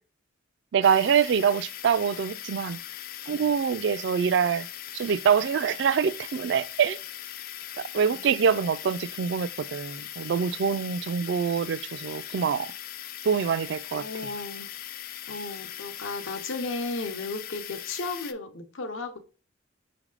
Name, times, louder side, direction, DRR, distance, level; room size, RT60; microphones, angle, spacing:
voice 1, 0.7-2.8 3.3-4.7 4.9-7.0 7.9-12.7 13.2-14.1, right 7 dB, 60° right, 0.3 m, -25 dB
sound 1, 0.8-18.3, left 12 dB, 45° left, 0.3 m, -40 dB
voice 2, 13.9-14.7 15.3-19.2, left 3 dB, 80° left, 0.8 m, -34 dB
5.5 x 3.4 x 2.4 m
head